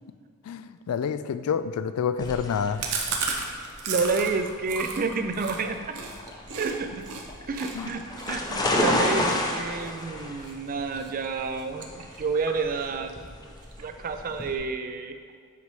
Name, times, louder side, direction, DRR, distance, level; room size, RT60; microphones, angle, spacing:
voice 1, 0.5-2.8 7.7-7.9, left 7 dB, 70° left, 13 dB, 0.3 m, -28 dB
sound 1, 2.2-14.6, left 1 dB, 15° left, 0.6 m, -31 dB
Chewing mastication, 2.8-6.7 7.0-7.2 7.5-10.5 10.9-11.3 11.5-12.4 12.7-12.8 13.1-13.2 13.5-14.1, right 5 dB, 80° right, 0.8 m, -34 dB
voice 2, 3.9-6.0 6.6-7.0 7.5-13.1 13.8-15.2, right 4 dB, 40° right, 8 dB, 0.4 m, -29 dB
8.2 x 5.3 x 3.1 m, 2.1 s
head